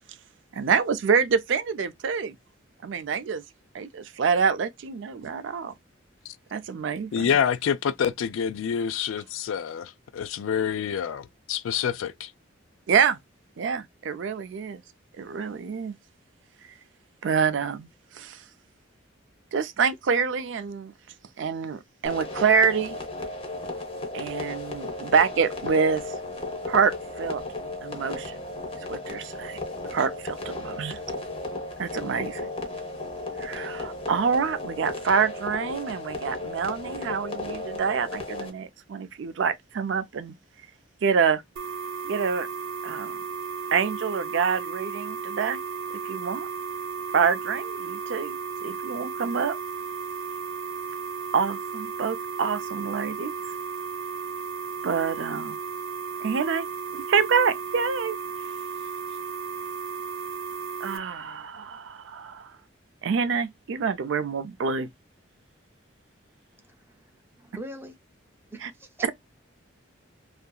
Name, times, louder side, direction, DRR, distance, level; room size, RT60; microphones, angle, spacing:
voice 1, 0.5-2.4 2.8-3.4 3.7-5.7 6.5-7.3 12.9-13.2 13.6-14.8 15.2-16.0 17.2-17.9 18.1-18.4 19.5-20.9 21.4-23.0 24.1-26.1 26.7-27.4 27.8-28.4 28.9-29.6 29.9-31.0 31.8-32.5 33.4-40.3 41.0-41.4 42.0-42.5 42.8-43.1 43.7-45.6 46.0-46.5 47.1-49.6 51.3-53.3 54.8-55.6 56.2-56.7 57.1-58.2 60.8-62.5 63.0-64.9 68.6-68.7 69.0-69.1, right 6 dB, 70° right, 0.4 m, -26 dB
voice 2, 7.1-12.3, left 7 dB, 85° left, 0.3 m, -27 dB
sound 1, 22.0-38.5, left 2 dB, 30° left, 0.6 m, -35 dB
sound 2, 41.6-61.0, right 5 dB, 85° right, 0.8 m, -34 dB
voice 3, 66.6-67.1 67.4-68.0 68.5-69.1, right 1 dB, 10° right, 0.5 m, -42 dB
2.7 x 2.5 x 2.3 m
head